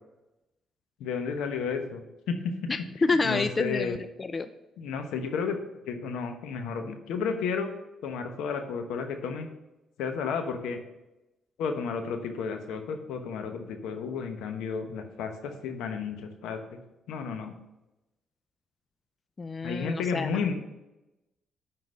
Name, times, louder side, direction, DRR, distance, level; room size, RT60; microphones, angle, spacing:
voice 1, 1.0-2.5 3.2-4.0 4.8-5.6 5.9-7.7 8.0-9.5 10.0-10.8 11.6-16.8 17.1-17.5 19.6-20.5, left 5 dB, 90° left, 6 dB, 1.0 m, -32 dB
voice 2, 2.7-4.5 19.4-20.3, left 3 dB, 30° left, 11 dB, 0.4 m, -28 dB
9.8 x 3.9 x 5.5 m, 0.97 s
cardioid pair, 90°, 0 cm